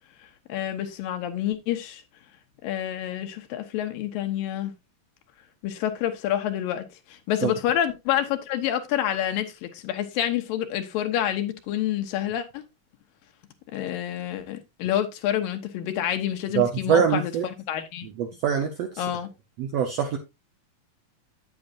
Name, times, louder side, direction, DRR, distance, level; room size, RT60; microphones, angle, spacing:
voice 1, 0.5-2.0 2.6-4.7 5.6-12.6 13.7-17.3 17.7-18.1 19.0-19.3, left 11 dB, 85° left, 2.7 m, -28 dB
voice 2, 16.5-17.5 18.2-19.0 19.6-20.2, right 8 dB, 80° right, 1.4 m, -24 dB
8.8 x 8.5 x 2.5 m
omnidirectional pair, 3.9 m